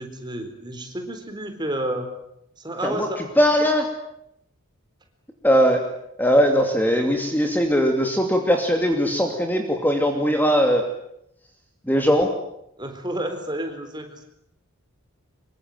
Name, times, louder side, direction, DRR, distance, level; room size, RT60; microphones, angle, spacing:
voice 1, 0.0-2.1 2.6-3.2 12.8-14.2, right 1 dB, 20° right, 6 dB, 4.0 m, -30 dB
voice 2, 2.8-3.8 5.4-5.8 6.2-10.8 11.9-12.3, equal, 10° left, 4 dB, 2.7 m, -20 dB
25.5 x 23.5 x 9.3 m, 0.76 s
head